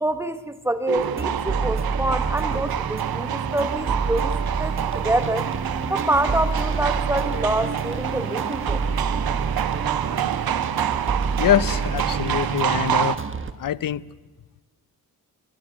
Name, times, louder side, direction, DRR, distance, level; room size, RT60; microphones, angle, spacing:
voice 1, 0.0-5.5 5.9-8.8, right 1 dB, 5° right, 11 dB, 1.3 m, -26 dB
sound 1, 0.9-13.2, right 10 dB, 75° right, 1.1 m, -27 dB
sound 2, 1.0-13.5, right 5 dB, 35° right, 1.3 m, -28 dB
voice 2, 11.4-13.2 13.6-14.1, left 11 dB, 65° left, 20 dB, 0.7 m, -24 dB
24.5 x 20.5 x 8.1 m, 1.3 s
cardioid pair, 100°, 37 cm